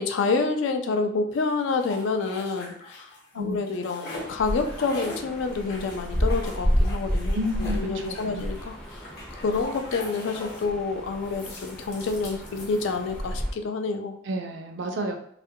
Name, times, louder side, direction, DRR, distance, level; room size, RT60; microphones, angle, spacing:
voice 1, 0.0-3.1 3.3-8.8 9.3-14.1, left 4 dB, 85° left, 6 dB, 0.4 m, -28 dB
sound 1, 1.3-3.3 3.5-10.7 11.2-13.3, left 1 dB, 55° left, 0.8 m, -42 dB
sound 2, 4.1-13.5, equal, 5° left, 0.4 m, -31 dB
voice 2, 7.3-8.5 14.3-15.2, equal, 75° right, 4 dB, 0.4 m, -31 dB
2.4 x 2.1 x 2.7 m, 0.69 s
head